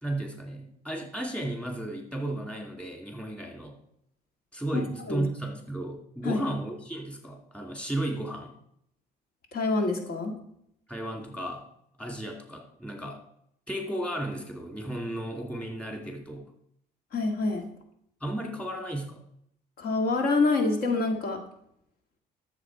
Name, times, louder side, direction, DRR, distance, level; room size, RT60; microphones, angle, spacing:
voice 1, 0.0-3.7 4.5-8.5 10.9-11.6 12.0-13.2 13.7-16.5 18.2-19.2, right 1 dB, 5° left, 1 dB, 2.6 m, -34 dB
voice 2, 4.7-5.2 6.2-6.4 9.5-10.3 17.1-17.7 19.8-21.4, left 3 dB, 60° left, 4 dB, 1.9 m, -26 dB
12.5 x 7.2 x 4.7 m, 0.71 s
cardioid pair, 110°, 17 cm